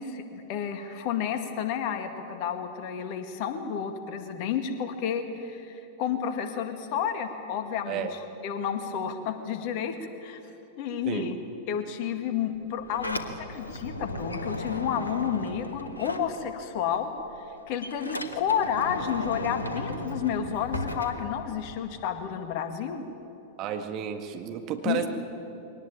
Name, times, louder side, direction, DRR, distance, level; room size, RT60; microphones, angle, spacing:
voice 1, 0.0-8.1 8.4-10.4 10.8-11.4 11.7-17.1 17.7-23.0 24.9-25.1, left 8 dB, 45° left, 8 dB, 2.0 m, -31 dB
Sliding door, 12.6-16.9 17.2-21.9, left 1 dB, 80° left, 1.4 m, -36 dB
voice 2, 23.6-25.1, right 9 dB, 40° right, 6 dB, 1.9 m, -32 dB
22.5 x 19.0 x 8.9 m, 3.0 s
figure-of-eight pair, 90°, 0 cm